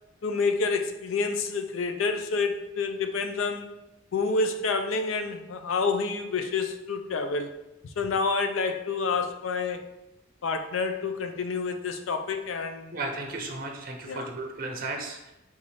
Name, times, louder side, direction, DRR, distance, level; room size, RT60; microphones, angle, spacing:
voice 1, 0.2-3.7 4.1-7.5 8.0-9.9 10.4-13.0 14.0-14.3, left 4 dB, 75° left, 7 dB, 0.4 m, -28 dB
voice 2, 12.9-15.3, right 2 dB, 45° right, 2 dB, 0.6 m, -34 dB
3.6 x 3.0 x 4.2 m, 0.92 s
head